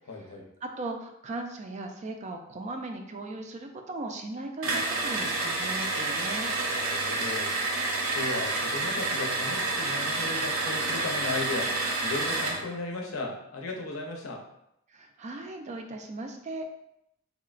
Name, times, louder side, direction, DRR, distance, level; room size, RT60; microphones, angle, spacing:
voice 1, 0.1-0.5 6.7-7.6 8.1-14.4, left 2 dB, 80° left, 1 dB, 0.6 m, -36 dB
voice 2, 0.6-6.5 14.9-16.7, right 2 dB, 35° right, 4 dB, 0.3 m, -37 dB
sound 1, 4.6-12.6, right 2 dB, 80° right, 0.6 m, -29 dB
3.8 x 2.1 x 2.4 m, 0.80 s
head